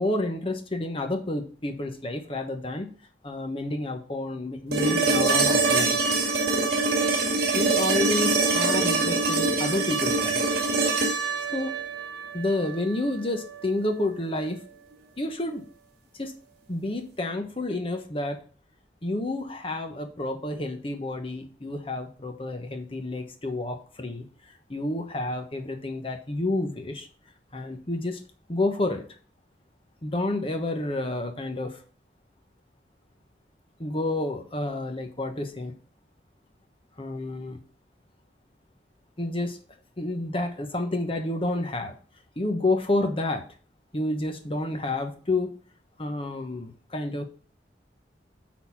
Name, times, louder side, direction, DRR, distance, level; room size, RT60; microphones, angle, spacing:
voice 1, 0.0-2.9 3.2-6.0 7.5-10.4 11.5-11.8 12.3-14.7 15.2-15.7 16.2-16.3 16.7-18.4 19.0-24.3 24.7-27.1 27.5-28.2 28.5-29.1 30.0-31.8 33.8-35.7 37.0-37.6 39.2-39.6 40.0-41.9 42.4-43.4 43.9-45.5 46.0-47.2, left 2 dB, 30° left, 6 dB, 1.1 m, -29 dB
sound 1, 4.7-12.8 14.9-15.0, right 3 dB, 60° right, 2.3 m, -24 dB
8.2 x 4.2 x 5.9 m, 0.41 s
head